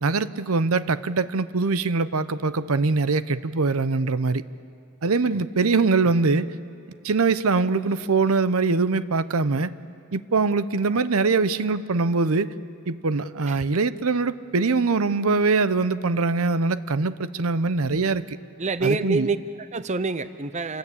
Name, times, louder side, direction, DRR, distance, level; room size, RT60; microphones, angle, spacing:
voice 1, 0.0-4.4 5.0-6.5 7.0-9.7 10.1-12.5 12.9-18.4 18.8-19.3, right 4 dB, 70° right, 14 dB, 0.7 m, -23 dB
voice 2, 18.6-20.8, right 3 dB, 30° right, 12 dB, 0.6 m, -27 dB
29.0 x 20.5 x 8.5 m, 2.6 s
head